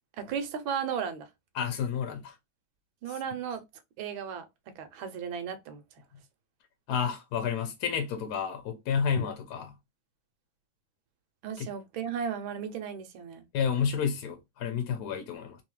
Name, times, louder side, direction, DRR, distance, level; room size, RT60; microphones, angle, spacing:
voice 1, 0.2-1.3 3.0-3.6 4.0-4.5 4.8-5.8 11.4-13.4, right 7 dB, 80° right, 1.5 m, -35 dB
voice 2, 1.5-2.3 6.9-9.7 11.6-11.7 13.5-15.6, left 7 dB, 65° left, 1.1 m, -30 dB
3.4 x 2.7 x 3.0 m
omnidirectional pair, 2.2 m